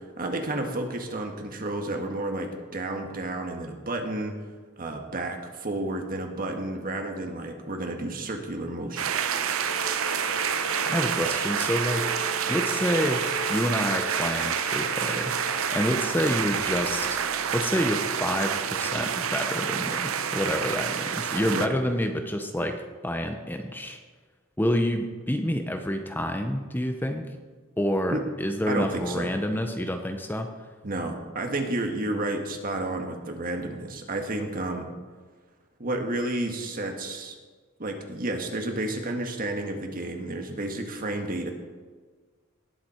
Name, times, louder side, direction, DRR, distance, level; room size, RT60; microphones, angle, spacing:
voice 1, 0.2-4.4 4.8-9.3 21.5-21.7 28.1-28.2 28.7-29.3 30.8-34.9 35.8-37.3 37.8-41.5, right 2 dB, 45° right, 4 dB, 1.5 m, -31 dB
sound 1, 9.0-21.7, right 7 dB, 80° right, 0.7 m, -28 dB
Bowed string instrument, 9.6-16.0, left 2 dB, 45° left, 0.8 m, -39 dB
voice 2, 10.9-12.1 12.5-15.4 15.7-17.3 17.5-24.0 24.6-27.3 27.8-30.5, equal, 10° left, 5 dB, 0.7 m, -28 dB
18.5 x 7.4 x 4.4 m, 1.4 s
head